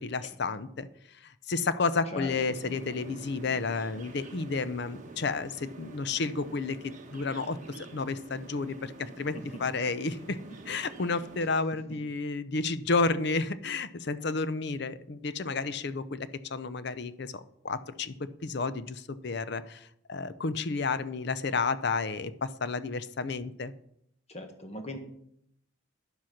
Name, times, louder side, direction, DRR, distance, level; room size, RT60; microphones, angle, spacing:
voice 1, 0.0-10.4 10.7-23.7, left 4 dB, 55° left, 14 dB, 0.6 m, -31 dB
sound 1, 2.3-11.5, right 2 dB, 40° right, 1.2 m, -47 dB
voice 2, 24.3-25.0, left 1 dB, 30° left, 5 dB, 1.4 m, -39 dB
10.0 x 7.7 x 5.8 m, 0.73 s
head